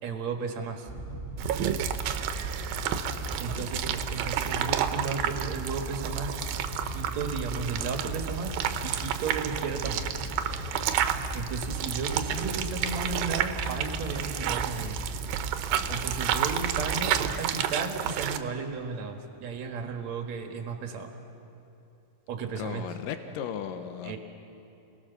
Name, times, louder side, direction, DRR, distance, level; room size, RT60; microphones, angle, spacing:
voice 1, 0.0-0.9 3.4-6.4 6.9-10.1 11.3-15.0 15.9-21.1 22.3-22.9 24.0-24.2, right 5 dB, 55° right, 4 dB, 2.7 m, -34 dB
Wind / Boat Water vehicle, 0.9-17.4, right 1 dB, 40° right, 1.1 m, -37 dB
sound 1, 1.4-18.4, right 10 dB, 80° right, 2.6 m, -31 dB
voice 2, 22.6-24.2, left 8 dB, 75° left, 8 dB, 2.6 m, -36 dB
28.0 x 19.5 x 6.9 m, 2.8 s
omnidirectional pair, 4.0 m